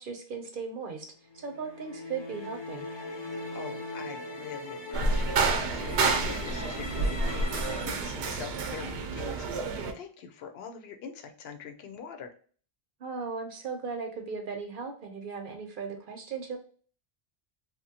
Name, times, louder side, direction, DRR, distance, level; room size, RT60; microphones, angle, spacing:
voice 1, 0.0-2.9 13.0-16.6, right 5 dB, 60° right, 4 dB, 0.7 m, -37 dB
sound 1, 1.3-7.9, left 2 dB, 45° left, 0.4 m, -40 dB
voice 2, 3.5-12.3, left 6 dB, 75° left, 5 dB, 0.8 m, -44 dB
sound 2, 4.9-9.9, right 3 dB, 90° right, 0.9 m, -29 dB
2.9 x 2.2 x 2.7 m, 0.44 s
omnidirectional pair, 1.1 m